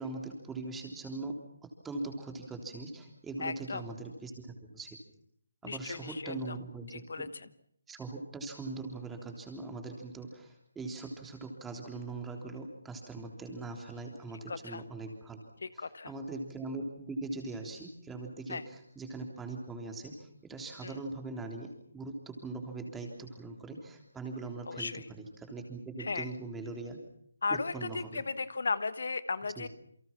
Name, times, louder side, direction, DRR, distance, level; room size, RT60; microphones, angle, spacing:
voice 1, 0.0-1.3 1.6-5.0 5.6-7.3 7.9-15.4 15.7-27.0 27.5-28.2 29.4-29.7, right 3 dB, 5° right, 2 dB, 3.5 m, -41 dB
voice 2, 3.4-3.8 5.7-6.5 7.1-7.3 14.5-14.8 15.6-16.1 18.5-18.6 20.8-21.0 24.7-25.0 26.0-26.3 27.4-29.7, left 4 dB, 65° left, 15 dB, 1.2 m, -35 dB
28.5 x 24.0 x 6.0 m, 0.69 s
figure-of-eight pair, 160°, 0 cm